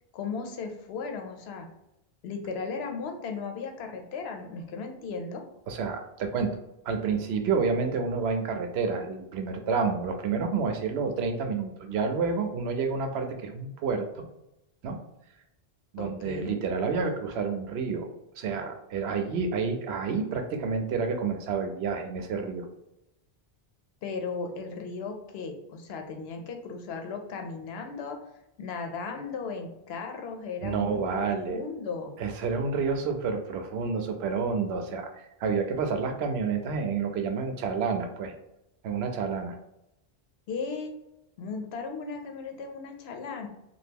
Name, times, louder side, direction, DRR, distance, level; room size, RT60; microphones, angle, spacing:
voice 1, 0.1-1.7 2.2-5.4 16.0-16.5 24.0-28.2 28.6-32.1 40.5-40.9 41.4-43.5, left 4 dB, 90° left, 4 dB, 0.8 m, -36 dB
voice 2, 5.7-6.6 6.8-14.3 14.8-15.0 15.9-18.1 18.4-22.7 30.6-31.6 32.2-38.3 38.8-39.6, right 5 dB, 85° right, 6 dB, 0.8 m, -29 dB
2.8 x 2.3 x 3.5 m, 0.85 s
omnidirectional pair, 1.0 m